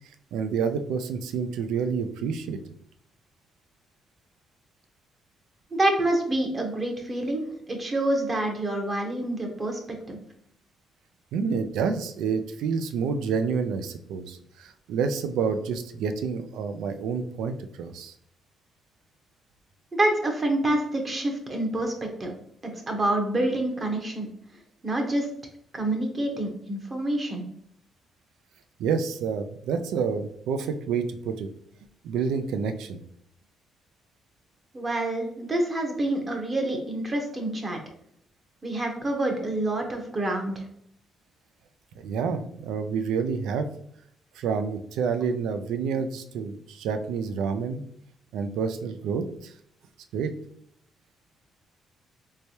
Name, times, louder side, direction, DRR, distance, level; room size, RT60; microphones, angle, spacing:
voice 1, 0.3-2.6 11.3-18.1 28.8-31.5 32.0-33.0 42.0-43.7 44.4-47.8 48.3-49.5 50.1-50.3, right 6 dB, 90° right, 9 dB, 0.3 m, -28 dB
voice 2, 5.7-7.4 7.7-10.2 19.9-22.3 22.6-24.3 24.8-25.3 25.7-27.4 34.7-37.8 38.6-40.7, right 1 dB, 35° right, 2 dB, 0.8 m, -27 dB
3.3 x 3.1 x 2.7 m, 0.69 s
cardioid pair, 90°, 0 cm